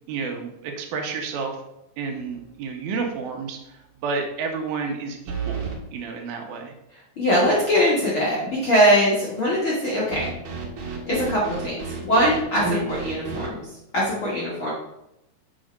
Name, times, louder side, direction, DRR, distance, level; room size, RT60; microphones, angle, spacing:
voice 1, 0.1-1.6 2.0-5.6 5.9-6.8 12.6-12.9, right 4 dB, 75° right, 3 dB, 2.6 m, -30 dB
sound 1, 2.2-2.6 3.0-3.1 5.3-5.8 10.1-13.5, right 5 dB, 55° right, 2.6 m, -32 dB
voice 2, 7.2-10.3 11.1-11.7 12.0-13.7 13.9-14.7, equal, 50° left, -6 dB, 1.6 m, -21 dB
7.5 x 4.4 x 5.1 m, 0.85 s
omnidirectional pair, 4.5 m